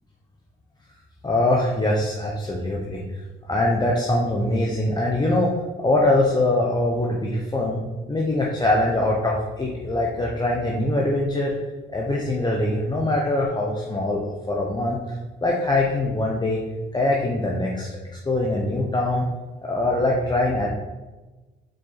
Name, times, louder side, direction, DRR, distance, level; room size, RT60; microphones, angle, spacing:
voice 1, 1.2-3.0 3.5-5.5 5.8-7.8 8.1-11.5 11.9-14.2 14.5-15.0 15.4-16.6 16.9-17.9 18.3-19.2 19.6-20.7, left 2 dB, 20° left, -2 dB, 0.9 m, -22 dB
5.1 x 4.4 x 4.1 m, 1.2 s
cardioid pair, 90°, 20 cm